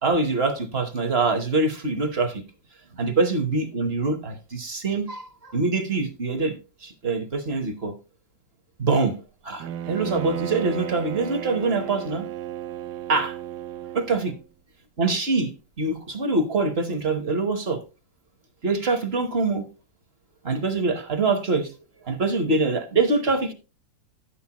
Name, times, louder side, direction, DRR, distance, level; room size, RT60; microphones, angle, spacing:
voice 1, 0.0-2.4 2.9-6.5 6.8-7.9 8.8-9.2 9.4-12.3 13.1-13.4 13.9-14.3 15.0-15.5 15.8-17.8 18.6-19.6 20.4-21.7 22.1-23.5, right 3 dB, 40° right, 1.0 m, -24 dB
Bowed string instrument, 9.6-14.5, right 11 dB, 70° right, 1.2 m, -34 dB
10.5 x 8.4 x 2.9 m
omnidirectional pair, 2.0 m